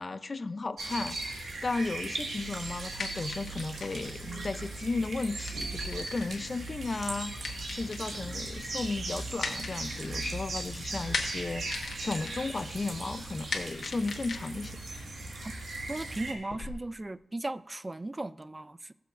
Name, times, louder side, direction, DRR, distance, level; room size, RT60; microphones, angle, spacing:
voice 1, 0.0-14.8, left 3 dB, 45° left, 0.5 m, -35 dB
sound 1, 0.8-16.3, right 2 dB, 85° right, 1.7 m, -38 dB
sound 2, 3.0-16.7, left 4 dB, 85° left, 1.3 m, -42 dB
Guitar, 4.2-6.8, right 2 dB, 60° right, 0.8 m, -51 dB
voice 2, 15.9-18.9, right 2 dB, 25° right, 0.4 m, -37 dB
20.5 x 6.9 x 2.6 m
wide cardioid pair, 85°, 0 cm